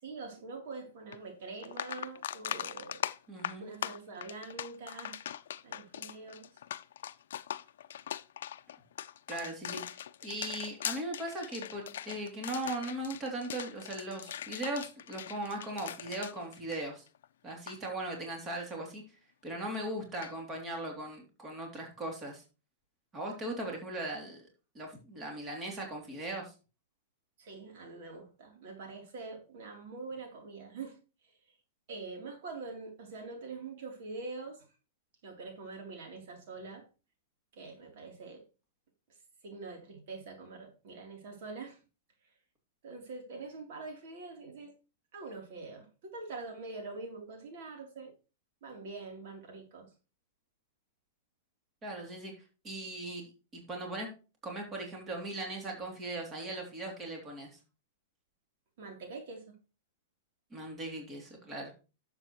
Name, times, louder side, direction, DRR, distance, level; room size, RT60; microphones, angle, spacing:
voice 1, 0.0-3.0 3.6-5.3 5.6-6.5 27.4-31.0 31.9-34.6 35.2-36.9 37.5-38.4 39.4-41.8 42.8-44.7 45.1-48.1 48.6-49.9 58.8-59.5, right 3 dB, 60° right, 3.4 m, -44 dB
sound 1, 1.1-1.2 1.6-17.2 17.5-17.8 20.2-20.3, left 10 dB, 75° left, 0.5 m, -41 dB
voice 2, 3.3-3.7 9.3-17.0 17.4-19.0 19.4-22.4 23.1-24.4 24.7-26.5 51.8-52.3 52.6-54.1 54.4-57.6 60.5-61.7, right 1 dB, 20° right, 3.0 m, -39 dB
11.5 x 7.4 x 3.1 m
hypercardioid pair, 145°, 0 cm